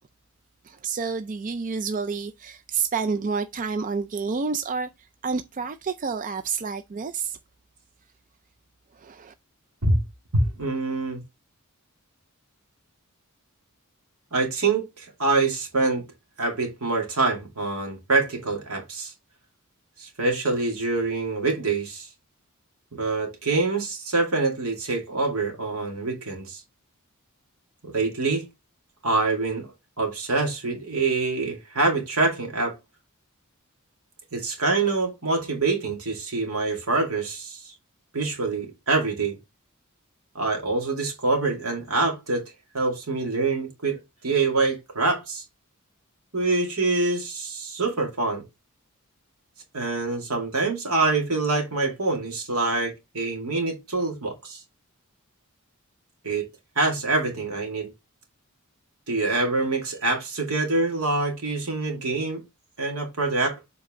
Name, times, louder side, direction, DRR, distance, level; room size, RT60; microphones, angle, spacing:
voice 1, 0.7-4.9 5.2-7.4 9.0-9.3, right 5 dB, 40° right, 0.4 m, -29 dB
voice 2, 10.3-11.2 14.3-16.1 16.4-19.1 20.0-22.1 22.9-26.6 27.8-28.5 29.0-29.7 30.0-32.8 34.3-37.7 38.1-39.4 40.3-44.0 44.2-45.4 46.3-48.4 49.7-54.6 56.2-56.4 56.8-57.9 59.1-62.4 62.8-63.6, right 3 dB, 80° right, 2.3 m, -25 dB
7.4 x 4.1 x 3.6 m
head